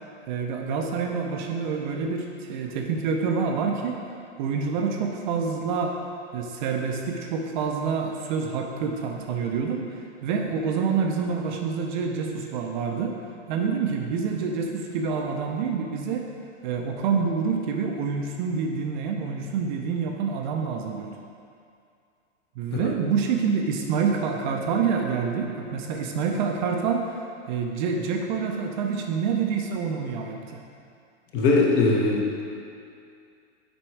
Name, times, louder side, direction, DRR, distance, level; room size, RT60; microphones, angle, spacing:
voice 1, 0.3-4.0 4.4-6.0 6.3-13.1 13.5-16.3 16.6-21.2 22.6-30.6, right 5 dB, 40° right, 2 dB, 0.6 m, -27 dB
voice 2, 31.3-32.4, left 3 dB, 30° left, -1 dB, 0.9 m, -21 dB
7.8 x 5.2 x 4.6 m, 2.4 s
hypercardioid pair, 150°, 37 cm